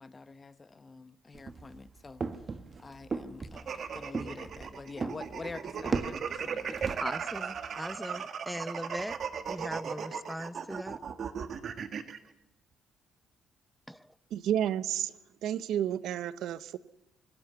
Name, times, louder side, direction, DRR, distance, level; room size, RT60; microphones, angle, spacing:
voice 1, 0.0-2.2 2.5-7.0, left 3 dB, 30° left, 1.0 m, -46 dB
sound 1, 1.3-7.0, right 4 dB, 35° right, 1.4 m, -37 dB
sound 2, 3.6-12.2, right 7 dB, 55° right, 1.6 m, -37 dB
voice 2, 7.0-9.2 9.5-11.0 13.9-14.1, equal, 5° right, 0.7 m, -39 dB
voice 3, 14.3-15.1 15.4-16.8, right 10 dB, 75° right, 0.7 m, -31 dB
24.5 x 14.5 x 8.3 m
cardioid pair, 85°, 0 cm